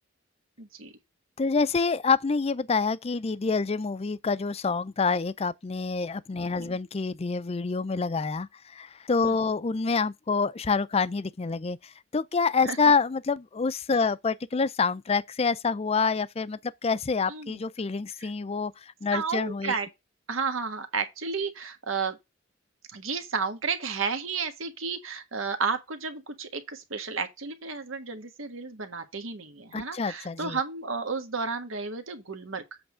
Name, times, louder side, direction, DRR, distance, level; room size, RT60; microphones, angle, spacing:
voice 1, 0.6-0.9 6.6-6.8 9.2-9.4 12.6-12.8 17.3-17.6 18.2-18.3 19.1-19.9 20.3-22.2 22.9-32.6, right 5 dB, 80° right, 1.4 m, -32 dB
voice 2, 1.4-19.8 29.7-30.6, left 4 dB, 30° left, 0.4 m, -27 dB
7.9 x 3.4 x 6.2 m
head